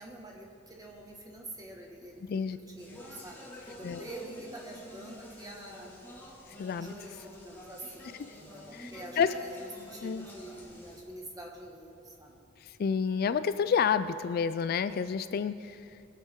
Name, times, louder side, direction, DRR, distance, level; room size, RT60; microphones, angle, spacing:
voice 1, 0.0-5.9 6.8-12.4, right 1 dB, 20° right, 0 dB, 1.6 m, -46 dB
Speech, 2.8-11.0, left 1 dB, 10° left, 2.0 m, -49 dB
voice 2, 6.6-6.9 8.7-9.4 10.0-10.3 12.6-16.0, left 6 dB, 50° left, 13 dB, 0.3 m, -30 dB
21.0 x 8.2 x 3.7 m, 2.7 s
head